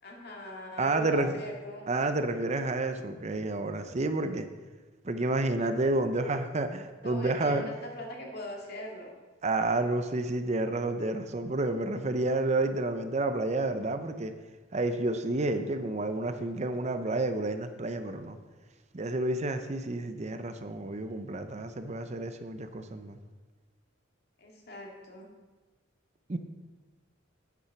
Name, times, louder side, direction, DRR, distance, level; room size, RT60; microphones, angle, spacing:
voice 1, 0.0-2.0 7.0-9.1 24.4-25.3, left 1 dB, 55° left, 0 dB, 2.3 m, -41 dB
voice 2, 0.8-1.3 1.9-4.5 5.0-7.7 9.4-14.3 14.7-18.4 18.9-23.2 26.3-26.4, right 2 dB, 35° right, 8 dB, 0.6 m, -30 dB
9.9 x 8.4 x 5.8 m, 1.3 s
head